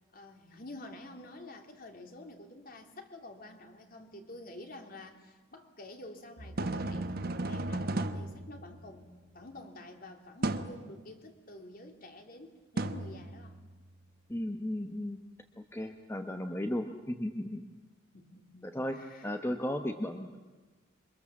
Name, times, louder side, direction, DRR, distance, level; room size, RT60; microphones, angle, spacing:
voice 1, 0.1-9.1 9.3-13.6 18.1-19.4, left 1 dB, 45° left, 4 dB, 3.0 m, -49 dB
sound 1, 6.4-9.2 10.4-10.8 12.8-13.8, right 2 dB, 50° right, 1.1 m, -35 dB
voice 2, 14.3-15.2 15.7-17.6 18.7-19.0 19.2-20.4, left 1 dB, 15° left, 5 dB, 1.1 m, -35 dB
27.5 x 24.5 x 7.3 m, 1.2 s
head